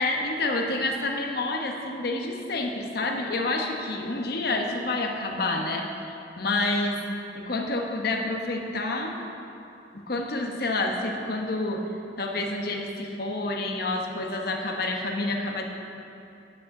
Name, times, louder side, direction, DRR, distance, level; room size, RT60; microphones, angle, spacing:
voice 1, 0.0-7.0 7.3-9.1 9.9-11.8 12.2-15.6, left 2 dB, 60° left, 2 dB, 1.1 m, -28 dB
9.3 x 6.3 x 8.4 m, 2.8 s
head